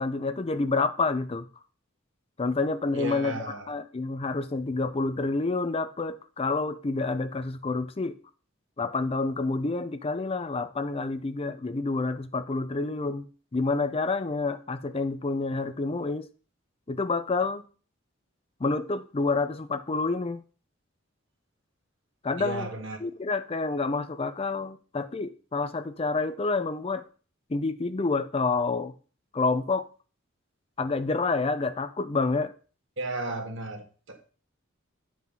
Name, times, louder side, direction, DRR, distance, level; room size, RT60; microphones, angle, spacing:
voice 1, 0.0-1.5 2.4-3.4 3.7-8.2 8.8-13.2 13.5-16.3 16.9-17.6 18.6-20.4 22.2-22.7 23.0-27.0 27.5-28.9 29.3-29.9 30.8-32.5, left 3 dB, 30° left, 0.5 m, -28 dB
voice 2, 2.9-3.7 22.4-23.0 33.0-34.3, right 2 dB, 65° right, 2.0 m, -34 dB
9.8 x 4.7 x 5.4 m
head